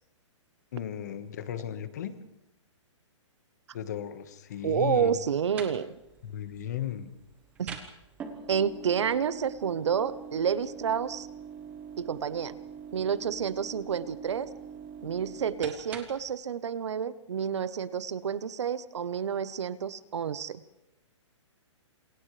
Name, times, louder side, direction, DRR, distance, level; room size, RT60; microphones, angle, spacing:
voice 1, 0.7-2.1 3.7-5.2 6.2-7.1, left 10 dB, 35° left, 10 dB, 1.5 m, -35 dB
voice 2, 4.6-5.9 7.6-7.8 8.5-11.3 12.0-12.6 12.9-14.5 15.0-20.6, right 7 dB, 65° right, 15 dB, 1.1 m, -29 dB
sound 1, 5.1-16.3, right 7 dB, 10° right, 1.1 m, -44 dB
29.0 x 27.5 x 3.3 m, 0.93 s
hypercardioid pair, 180°, 16 cm